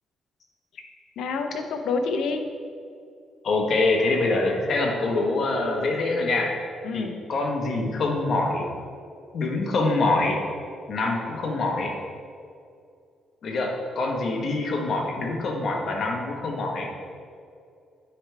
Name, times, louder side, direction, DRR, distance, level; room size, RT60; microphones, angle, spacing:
voice 1, 1.2-2.4 6.8-7.1, left 4 dB, 75° left, 6 dB, 0.7 m, -27 dB
voice 2, 3.4-6.6 6.9-8.7 9.3-10.4 10.9-11.9 13.4-16.9, left 2 dB, 60° left, 1 dB, 1.2 m, -25 dB
9.9 x 3.4 x 4.6 m, 2.4 s
cardioid pair, 90°, 0 cm